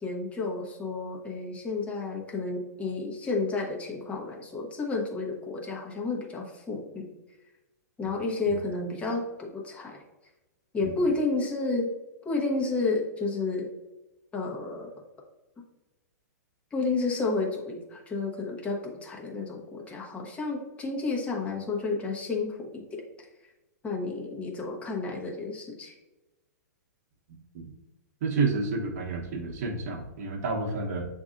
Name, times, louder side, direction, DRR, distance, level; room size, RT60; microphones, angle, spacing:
voice 1, 0.0-7.1 8.0-10.0 10.7-11.9 12.2-13.7 14.3-14.9 16.7-23.0 23.8-25.9, left 3 dB, 15° left, -2 dB, 0.9 m, -31 dB
voice 2, 28.2-31.1, right 4 dB, 55° right, -1 dB, 1.0 m, -30 dB
7.7 x 2.7 x 2.5 m, 1.0 s
hypercardioid pair, 130°, 9 cm